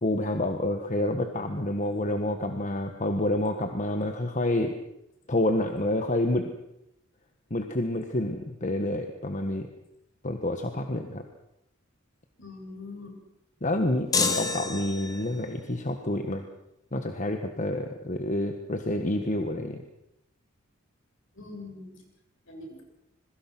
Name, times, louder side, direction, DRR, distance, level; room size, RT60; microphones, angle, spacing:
voice 1, 0.0-4.8 5.3-6.5 7.5-9.7 10.2-11.2 13.6-16.5 16.9-19.8, left 1 dB, 35° left, 6 dB, 1.5 m, -28 dB
voice 2, 12.4-13.1 21.4-21.9 22.5-22.8, left 3 dB, 65° left, 2 dB, 8.0 m, -42 dB
sound 1, 14.1-15.4, left 4 dB, 15° left, 2.1 m, -28 dB
26.5 x 22.0 x 6.2 m, 0.84 s
head